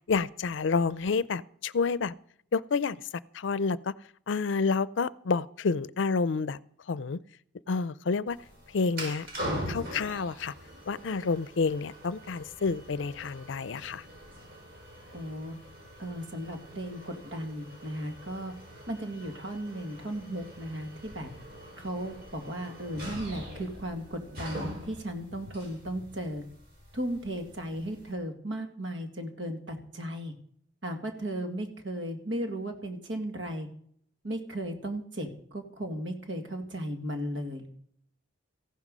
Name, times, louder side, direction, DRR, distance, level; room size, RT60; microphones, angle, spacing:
voice 1, 0.1-2.1 2.5-3.0 3.3-3.9 4.3-6.6 6.9-7.2 7.7-8.4 8.7-9.3 9.7-10.5 10.9-14.0, left 4 dB, 80° left, 19 dB, 0.5 m, -29 dB
sound 1, 8.3-28.1, equal, 50° right, 5.9 m, -43 dB
voice 2, 15.1-15.5 16.0-18.5 18.9-21.3 21.8-26.4 26.9-30.3 30.8-33.7 34.2-37.7, right 1 dB, 75° right, 5 dB, 2.1 m, -36 dB
15.0 x 11.0 x 5.4 m, 0.64 s
head